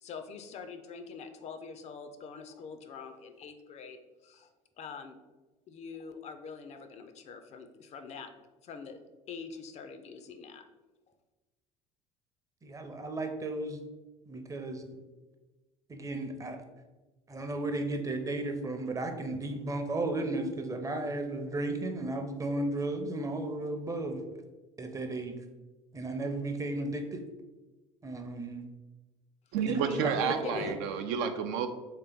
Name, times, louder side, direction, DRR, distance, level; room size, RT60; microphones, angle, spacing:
voice 1, 0.0-4.5 4.8-5.2 5.7-8.3 8.6-9.0 9.3-10.6 29.7-30.7, left 5 dB, 45° left, 8 dB, 0.4 m, -44 dB
voice 2, 12.6-13.8 14.3-14.9 15.9-16.6 17.3-24.2 24.8-25.4 25.9-27.2 28.0-28.6 29.7-30.1 30.6-30.7, right 2 dB, 20° right, 6 dB, 0.6 m, -34 dB
voice 3, 29.5-31.7, right 7 dB, 70° right, 7 dB, 0.4 m, -30 dB
3.3 x 2.9 x 3.4 m, 1.2 s
hypercardioid pair, 70°, 16 cm